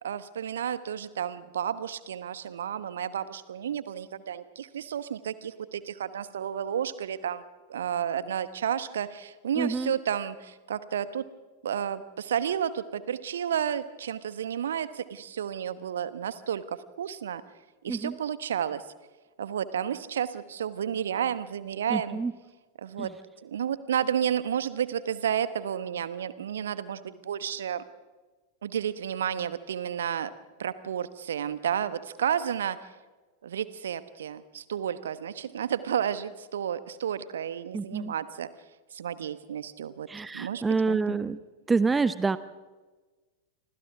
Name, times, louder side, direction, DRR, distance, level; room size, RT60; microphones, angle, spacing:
voice 1, 0.0-7.4 7.7-11.3 11.6-17.4 17.8-18.8 19.4-22.2 22.8-23.1 23.4-27.8 28.6-30.3 30.6-32.8 33.4-38.5 38.9-40.1 40.3-41.2, right 9 dB, 65° right, 15 dB, 1.2 m, -31 dB
voice 2, 9.5-9.9 17.9-18.2 21.9-22.3 23.0-23.1 37.7-38.1 40.1-41.4 41.7-42.4, right 4 dB, 10° right, 16 dB, 0.8 m, -27 dB
28.5 x 25.5 x 3.6 m, 1.3 s
figure-of-eight pair, 90°, 0 cm